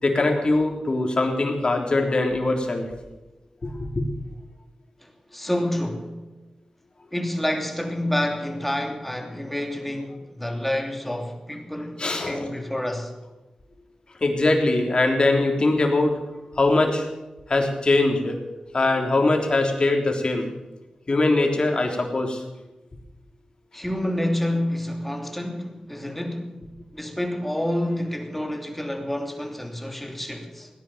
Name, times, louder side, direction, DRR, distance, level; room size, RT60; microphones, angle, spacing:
voice 1, 0.0-2.9 3.6-4.1 12.0-12.5 14.2-16.2 16.6-17.1 17.5-18.4 18.7-20.5 21.1-22.4, left 2 dB, 45° left, 3.5 m, -22 dB
voice 2, 5.0-6.1 7.1-13.1 23.7-26.6 26.9-30.7, left 1 dB, 5° left, 3.0 m, -28 dB
17.5 x 10.5 x 7.6 m
cardioid pair, 60°, 2 cm